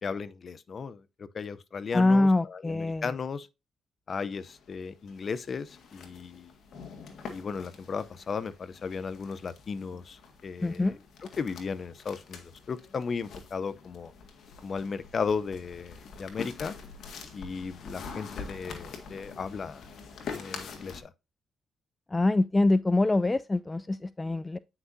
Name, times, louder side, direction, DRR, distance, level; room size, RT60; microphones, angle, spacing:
voice 1, 0.0-3.5 4.1-6.5 7.3-11.0 11.4-14.1 14.6-16.7 17.3-19.9 20.3-21.1, left 5 dB, 45° left, 0.7 m, -35 dB
voice 2, 1.9-3.0 10.6-11.0 22.1-24.6, left 2 dB, 20° left, 0.3 m, -24 dB
sound 1, 4.3-21.0, left 5 dB, 65° left, 1.9 m, -45 dB
9.1 x 5.9 x 2.7 m
cardioid pair, 90°, 0 cm